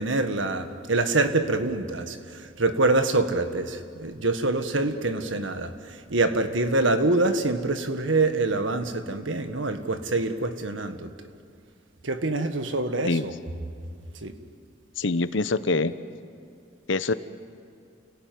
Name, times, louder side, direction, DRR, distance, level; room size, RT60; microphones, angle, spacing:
voice 1, 0.0-11.1 12.0-13.3 14.2-14.4, right 2 dB, 85° right, 8 dB, 1.8 m, -25 dB
voice 2, 15.0-15.9 16.9-17.1, left 3 dB, 85° left, 13 dB, 1.0 m, -24 dB
29.5 x 18.0 x 9.5 m, 2.4 s
head